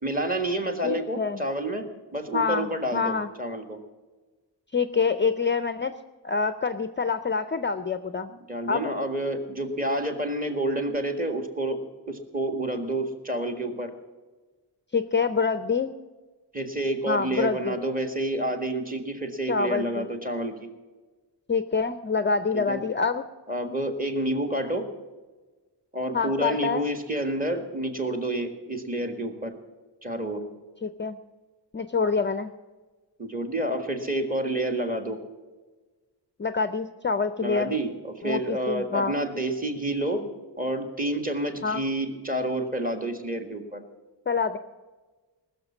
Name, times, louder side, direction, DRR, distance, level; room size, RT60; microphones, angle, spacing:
voice 1, 0.0-3.8 8.5-11.8 12.1-13.9 16.5-20.7 22.5-22.8 23.5-24.9 25.9-29.5 30.0-30.4 33.2-35.2 37.4-40.3 40.6-43.8, right 1 dB, 20° right, 6 dB, 1.6 m, -29 dB
voice 2, 0.8-1.4 2.3-3.3 4.7-5.9 6.2-8.3 8.7-8.9 14.9-15.9 17.1-17.8 19.5-20.1 21.5-23.2 26.1-26.8 30.8-31.2 31.7-32.5 36.4-37.7 38.2-39.1 41.6-41.8 44.3-44.6, left 5 dB, 25° left, 10 dB, 0.5 m, -26 dB
20.0 x 6.7 x 7.3 m, 1.3 s
wide cardioid pair, 170°, 42 cm